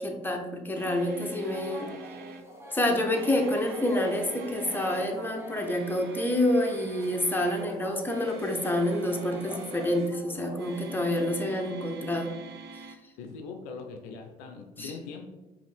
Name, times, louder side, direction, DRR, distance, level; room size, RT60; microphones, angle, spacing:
voice 1, 0.0-1.9 2.7-12.3 14.8-14.9, left 1 dB, 10° left, 1 dB, 0.9 m, -28 dB
sound 1, 0.7-2.5 3.0-5.1 5.5-7.7 8.0-10.1 10.5-13.0, right 4 dB, 50° right, 0.5 m, -46 dB
sound 2, 1.3-11.4, left 1 dB, 10° right, 1.1 m, -45 dB
voice 2, 13.2-15.2, left 4 dB, 70° left, 5 dB, 0.5 m, -41 dB
4.9 x 2.7 x 3.3 m, 1.1 s
hypercardioid pair, 50°, 21 cm